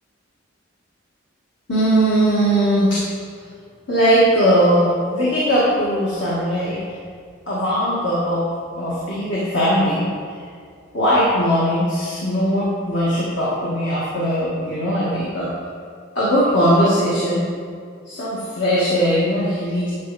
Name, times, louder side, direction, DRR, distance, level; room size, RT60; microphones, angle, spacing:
voice 1, 1.7-3.0 3.9-6.8 7.5-8.4 8.8-10.1 10.9-15.5 16.2-17.5 18.1-19.9, equal, 65° left, -8 dB, 1.8 m, -19 dB
11.0 x 5.8 x 4.2 m, 2.1 s
head